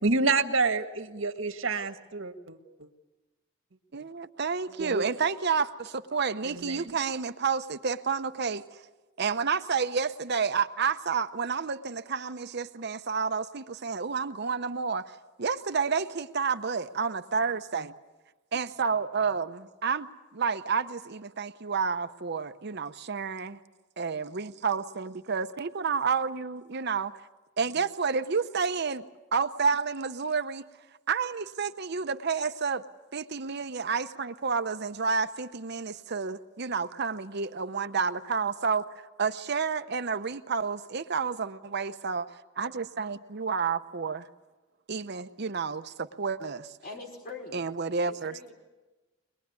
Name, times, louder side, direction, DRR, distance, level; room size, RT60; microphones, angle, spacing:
voice 1, 0.0-2.9 4.8-5.1 6.4-6.9, right 3 dB, 90° right, 7 dB, 1.7 m, -28 dB
voice 2, 3.9-8.6 9.2-15.1 15.4-17.9 18.5-20.1 20.3-23.6 24.0-27.1 27.6-29.0 29.3-30.6 31.1-32.8 33.1-44.3 44.9-46.7 47.5-48.4, right 5 dB, 55° right, 11 dB, 0.8 m, -30 dB
voice 3, 46.8-47.7 48.0-48.5, left 3 dB, 50° left, 1 dB, 5.3 m, -43 dB
23.0 x 21.5 x 9.5 m, 1.2 s
head